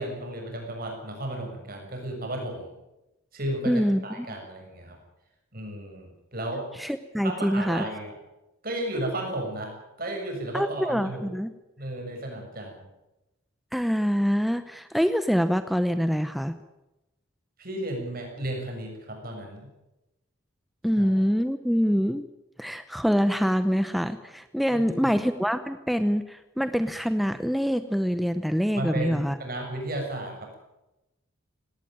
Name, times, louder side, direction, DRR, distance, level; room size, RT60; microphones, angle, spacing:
voice 1, 0.0-2.7 3.3-5.0 5.5-6.7 7.2-8.1 8.6-11.3 11.8-12.9 17.6-19.7 21.0-21.1 24.7-25.2 28.8-30.6, right 1 dB, 45° right, 2 dB, 7.1 m, -34 dB
voice 2, 3.7-4.3 6.8-7.8 10.5-11.5 13.7-16.5 20.8-22.2 22.6-29.4, equal, ahead, 10 dB, 0.8 m, -25 dB
18.5 x 17.5 x 9.3 m, 0.97 s
head